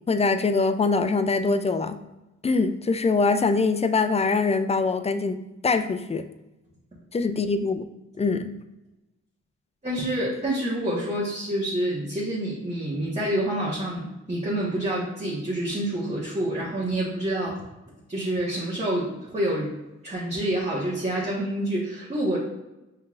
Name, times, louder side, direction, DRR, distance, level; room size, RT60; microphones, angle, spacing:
voice 1, 0.1-2.0 2.4-6.2 7.1-7.8 8.2-8.5, left 4 dB, 20° left, 10 dB, 0.4 m, -23 dB
voice 2, 9.8-17.6 18.1-19.7 20.0-22.4, right 1 dB, 20° right, -7 dB, 1.3 m, -27 dB
5.4 x 3.3 x 2.5 m, 0.98 s
cardioid pair, 55°, 30 cm